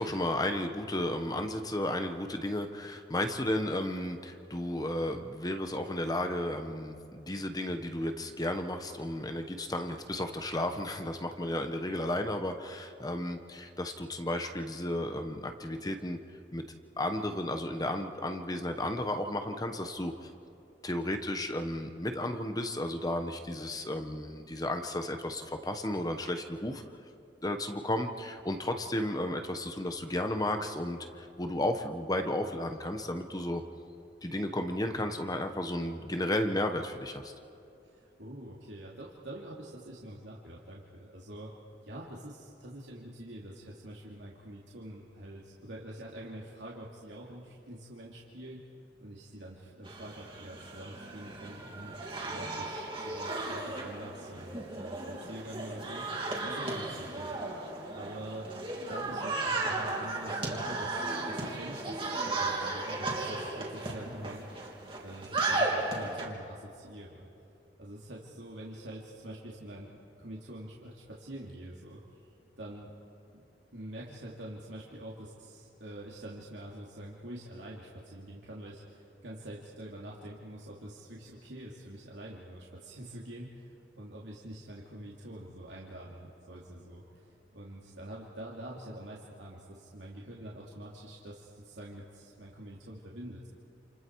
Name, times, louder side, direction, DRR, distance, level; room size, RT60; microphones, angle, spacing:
voice 1, 0.0-16.2 16.5-20.3 20.8-26.8 27.4-33.6 34.2-37.3, left 1 dB, 20° left, 6 dB, 1.2 m, -33 dB
voice 2, 37.9-41.5 41.8-48.6 49.0-57.4 57.9-58.5 58.9-62.1 62.3-64.6 64.9-67.3 67.8-72.3 72.6-72.9 73.3-73.4 73.7-93.5, right 1 dB, 75° right, -4 dB, 2.8 m, -46 dB
sound 1, 49.8-66.3, right 2 dB, 30° right, 3.2 m, -35 dB
29.0 x 28.5 x 4.7 m, 2.7 s
head